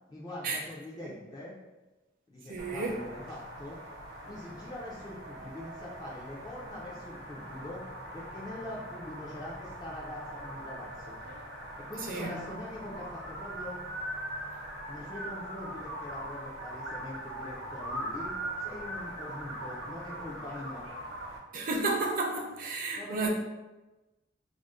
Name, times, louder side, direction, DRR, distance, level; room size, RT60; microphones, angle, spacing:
voice 1, 0.1-1.5 2.3-3.8 4.2-7.8 8.1-11.2 11.9-13.8 14.9-18.3 18.6-20.9 23.0-23.3, left 1 dB, 20° left, -6 dB, 0.4 m, -43 dB
voice 2, 2.5-2.9 12.1-12.3 21.5-23.3, right 3 dB, 45° right, 0 dB, 0.5 m, -32 dB
sound 1, 2.6-21.4, right 1 dB, 85° right, 0.8 m, -41 dB
2.5 x 2.0 x 3.6 m, 1.1 s
head